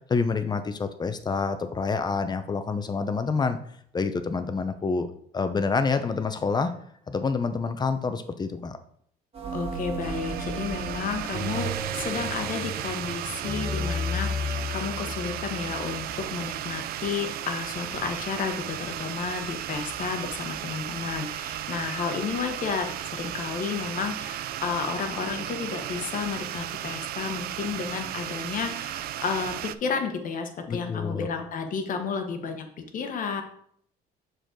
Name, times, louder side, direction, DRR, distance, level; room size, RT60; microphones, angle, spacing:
voice 1, 0.1-3.6 3.9-6.7 7.1-8.8 30.7-31.3, left 4 dB, 25° left, 9 dB, 0.7 m, -27 dB
sound 1, 9.3-21.5, left 1 dB, 35° right, 1.8 m, -36 dB
voice 2, 9.5-33.4, left 5 dB, 50° left, 5 dB, 1.1 m, -32 dB
sound 2, 10.0-29.8, right 12 dB, 65° right, 0.4 m, -35 dB
6.5 x 5.1 x 3.8 m, 0.65 s
cardioid pair, 110°, 17 cm